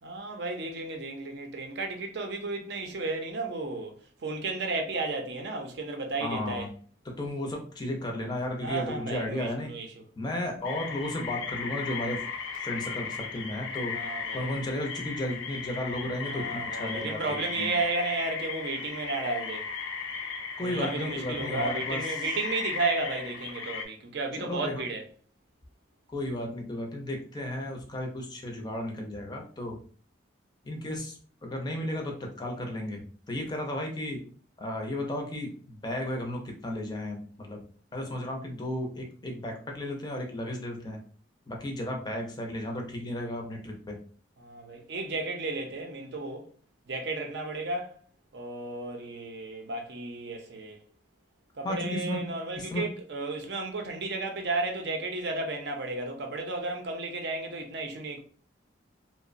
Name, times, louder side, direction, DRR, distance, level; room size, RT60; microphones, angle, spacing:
voice 1, 0.0-4.0 4.2-6.7 8.6-10.0 13.9-14.5 16.3-19.7 20.6-25.0 44.4-46.5 46.9-48.0 48.3-50.8 51.6-58.2, right 3 dB, 60° right, 0.5 m, -33 dB
voice 2, 6.2-6.7 7.2-9.7 10.2-12.2 12.6-14.0 14.3-17.7 20.6-22.0 24.3-24.9 26.1-29.8 30.6-34.2 34.6-37.6 37.9-41.0 41.5-44.0 51.6-52.3 52.6-52.9, left 1 dB, 20° left, 0.5 m, -34 dB
sound 1, 10.6-23.9, left 5 dB, 85° left, 0.5 m, -36 dB
2.8 x 2.0 x 2.5 m
head